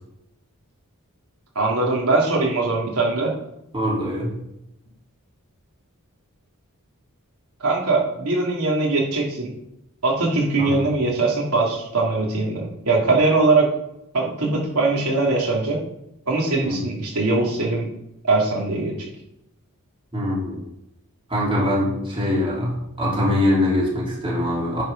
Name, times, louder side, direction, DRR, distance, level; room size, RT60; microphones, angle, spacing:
voice 1, 1.5-3.3 7.6-9.5 10.0-13.7 14.1-15.8 16.3-17.9 18.3-19.1, right 3 dB, 85° right, -3 dB, 2.8 m, -21 dB
voice 2, 3.7-4.3 10.6-10.9 16.6-16.8 20.1-20.6 21.3-24.8, left 1 dB, 25° right, -5 dB, 3.3 m, -23 dB
10.5 x 5.0 x 5.3 m, 0.84 s
head